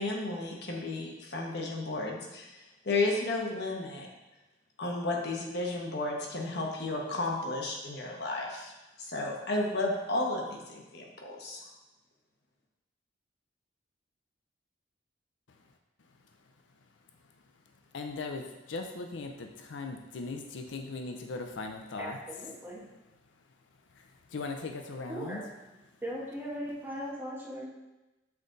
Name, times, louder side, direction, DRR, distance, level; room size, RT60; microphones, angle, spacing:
voice 1, 0.0-2.5 2.8-4.1 4.8-8.7 9.0-11.6, left 2 dB, 60° left, -1 dB, 1.1 m, -33 dB
voice 2, 17.9-22.2 24.3-25.4, left 3 dB, 75° left, 5 dB, 0.5 m, -38 dB
voice 3, 22.0-22.8 25.1-25.5 26.0-27.6, equal, 10° right, -5 dB, 1.4 m, -38 dB
7.3 x 3.8 x 3.9 m, 1.0 s
head